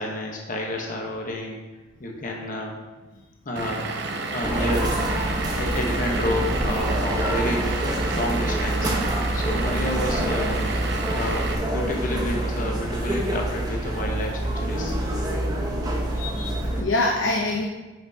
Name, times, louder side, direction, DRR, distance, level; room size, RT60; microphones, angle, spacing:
voice 1, 0.0-1.6 2.0-2.8 3.5-3.9 4.3-5.1 5.5-7.7 8.0-8.9 9.3-10.6 11.1-14.9, left 1 dB, 40° left, 0 dB, 1.0 m, -29 dB
Vehicle / Engine, 3.6-11.6, right 3 dB, 55° right, 0.8 m, -31 dB
sound 1, 4.4-16.8, right 1 dB, 20° right, 1.0 m, -26 dB
voice 2, 16.1-17.6, left 2 dB, 70° left, 0 dB, 0.7 m, -26 dB
9.4 x 5.9 x 2.8 m, 1.2 s
head